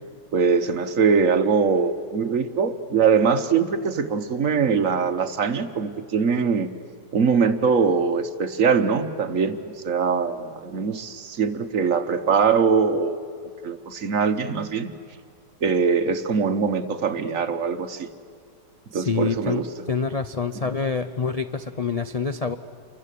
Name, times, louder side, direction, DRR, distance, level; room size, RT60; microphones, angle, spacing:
voice 1, 0.3-6.7 7.1-9.6 9.8-13.2 13.6-14.9 15.6-18.1 18.9-19.7, right 5 dB, 55° right, 10 dB, 1.4 m, -22 dB
voice 2, 18.9-22.5, left 5 dB, 55° left, 9 dB, 0.4 m, -26 dB
29.0 x 24.0 x 8.4 m, 2.3 s
omnidirectional pair, 1.8 m